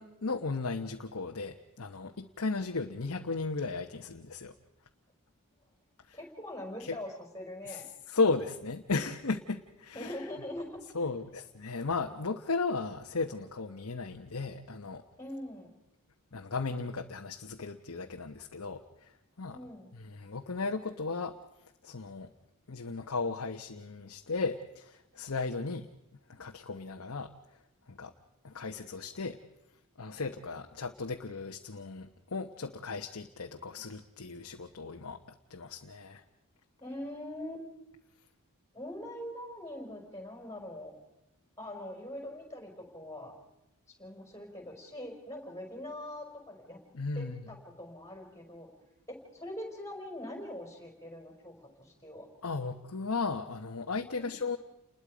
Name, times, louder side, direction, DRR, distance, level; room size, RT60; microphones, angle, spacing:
voice 1, 0.0-4.5 6.1-6.2 6.8-7.0 7.7-10.2 10.9-15.0 16.3-19.1 19.4-19.6 19.9-21.3 21.8-22.3 22.7-25.9 26.3-27.3 27.9-28.1 28.4-29.4 30.0-35.2 35.5-36.2 46.9-47.4 52.4-54.6, left 3 dB, 65° left, 3 dB, 1.0 m, -35 dB
voice 2, 6.1-7.8 9.9-10.8 15.2-15.7 19.5-19.9 36.8-37.6 38.7-40.9 41.6-43.3 44.0-46.8 47.1-48.7 49.1-52.3 54.2-54.4, left 1 dB, 15° left, 1 dB, 5.4 m, -42 dB
29.5 x 21.0 x 5.1 m, 0.87 s
head